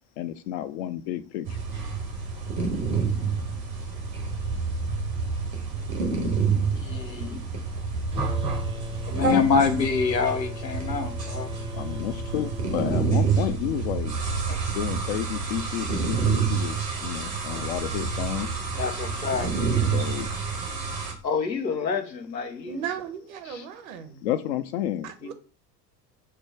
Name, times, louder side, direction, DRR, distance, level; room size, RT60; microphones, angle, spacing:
voice 1, 0.2-1.6 11.7-14.2 14.7-18.5 19.6-20.3 24.2-25.1, left 11 dB, 40° left, 0.4 m, -31 dB
sound 1, 1.5-21.1, right 5 dB, 80° right, 1.3 m, -28 dB
voice 2, 6.7-7.4 9.0-11.5 14.5-14.6 18.8-19.5 21.2-22.8 23.5-23.6, left 5 dB, 85° left, 0.7 m, -26 dB
sound 2, 8.1-13.1, left 2 dB, 10° right, 0.6 m, -38 dB
voice 3, 22.7-24.3 25.0-25.3, right 8 dB, 55° right, 0.8 m, -36 dB
4.9 x 2.2 x 4.5 m
figure-of-eight pair, 75°, 49 cm